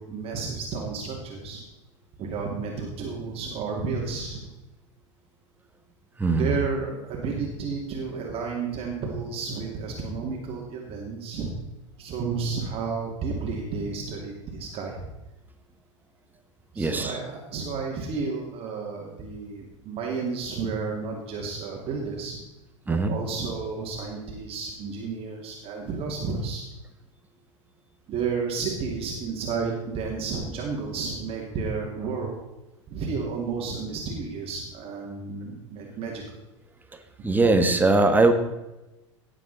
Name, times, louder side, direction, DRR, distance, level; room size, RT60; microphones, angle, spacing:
voice 1, 0.0-1.6 2.2-4.5 6.3-11.5 12.0-15.1 16.7-22.4 22.8-26.6 28.1-32.4 32.9-36.2, right 4 dB, 35° right, -1 dB, 2.4 m, -32 dB
voice 2, 6.2-6.6 16.8-17.2 22.9-23.1 37.2-38.3, right 3 dB, 10° right, 6 dB, 1.5 m, -20 dB
17.5 x 7.5 x 4.1 m, 1.0 s
figure-of-eight pair, 85°, 16 cm